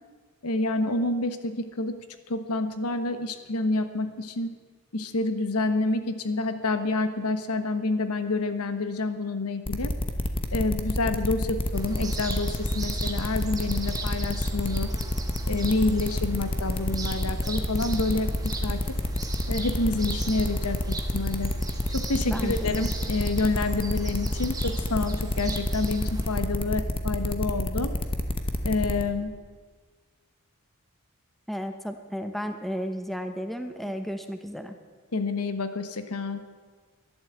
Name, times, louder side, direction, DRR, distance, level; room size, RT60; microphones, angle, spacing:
voice 1, 0.4-2.0 2.3-4.5 4.9-9.9 10.5-14.9 15.5-18.8 19.5-21.5 21.9-27.9 28.6-29.3 35.1-36.4, left 2 dB, 85° left, 9 dB, 1.2 m, -28 dB
sound 1, 9.7-29.0, left 1 dB, 25° left, 1.0 m, -28 dB
sound 2, 11.7-26.4, right 2 dB, 15° right, 1.4 m, -39 dB
voice 2, 22.3-22.9 31.5-34.8, equal, ahead, 7 dB, 0.8 m, -33 dB
12.5 x 11.5 x 8.2 m, 1.5 s
head